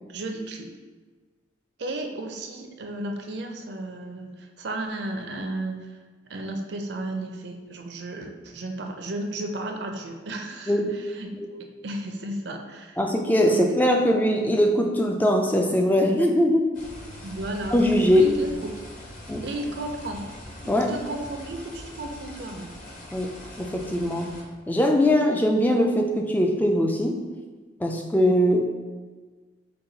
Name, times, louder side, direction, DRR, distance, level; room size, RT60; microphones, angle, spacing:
voice 1, 0.1-0.7 1.8-6.0 6.3-11.4 11.8-13.0 13.5-13.9 17.2-18.7 19.4-20.3 20.7-22.8, right 1 dB, 60° right, 3 dB, 0.5 m, -33 dB
voice 2, 13.0-16.7 17.7-18.3 19.3-19.4 20.7-20.9 23.1-24.3 24.7-27.2 27.8-28.7, equal, 10° left, 2 dB, 0.3 m, -21 dB
sound 1, 16.7-24.4, left 1 dB, 45° left, 0.9 m, -42 dB
5.4 x 2.3 x 3.9 m, 1.4 s
head